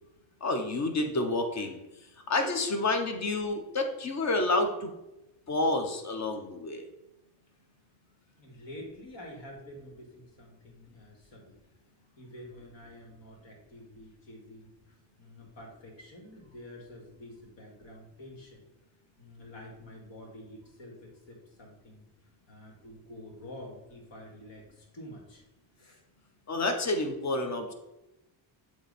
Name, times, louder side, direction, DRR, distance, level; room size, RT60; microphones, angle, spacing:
voice 1, 0.4-1.8 2.3-4.9 5.5-6.8 26.5-27.7, left 2 dB, 35° left, 5 dB, 0.9 m, -29 dB
voice 2, 8.4-11.6 12.2-18.6 19.2-22.0 22.5-25.4 25.8-26.0, left 1 dB, 65° left, 0 dB, 2.2 m, -48 dB
8.0 x 3.1 x 4.2 m, 0.95 s
cardioid pair, 120°, 48 cm